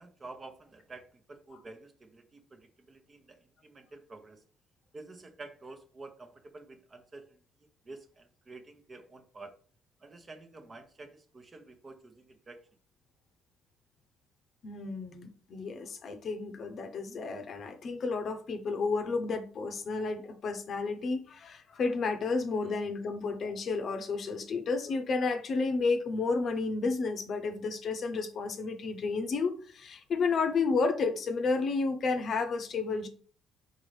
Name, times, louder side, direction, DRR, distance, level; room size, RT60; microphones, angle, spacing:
voice 1, 0.0-4.4 4.9-7.4 7.9-9.5 10.0-12.6, right 3 dB, 35° right, 7 dB, 0.8 m, -49 dB
voice 2, 14.6-33.1, left 4 dB, 55° left, 7 dB, 0.7 m, -31 dB
4.0 x 3.8 x 3.2 m, 0.42 s
supercardioid pair, 80°, 0 cm